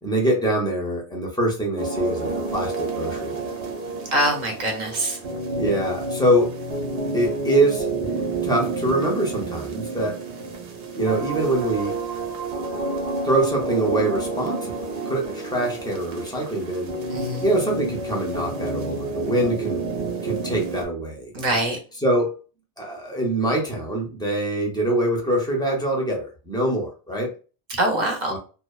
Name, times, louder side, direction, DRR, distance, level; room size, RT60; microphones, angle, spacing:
voice 1, 0.0-3.5 5.6-6.6 7.1-7.9 8.4-10.2 11.0-12.0 13.2-16.9 17.4-19.9 20.2-21.3 22.0-22.4 22.8-27.3 28.3-28.4, right 1 dB, 5° left, -1 dB, 0.4 m, -24 dB
sound 1, 1.8-20.9, right 2 dB, 80° right, 0.9 m, -29 dB
voice 2, 4.1-5.2 17.1-17.4 21.3-21.8 27.8-28.3, right 1 dB, 50° right, 2 dB, 0.7 m, -23 dB
2.6 x 2.0 x 2.3 m, 0.35 s
omnidirectional pair, 1.1 m